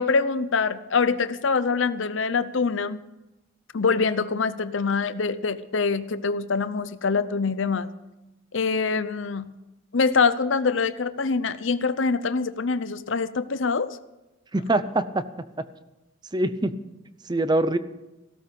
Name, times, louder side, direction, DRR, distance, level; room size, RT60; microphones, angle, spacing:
voice 1, 0.0-3.0 3.7-7.9 8.5-9.5 9.9-14.0, left 4 dB, 70° left, 13 dB, 0.7 m, -24 dB
voice 2, 14.5-15.2 16.3-16.7 17.2-17.8, right 2 dB, 20° right, 13 dB, 0.7 m, -23 dB
16.5 x 13.0 x 5.3 m, 1.0 s
head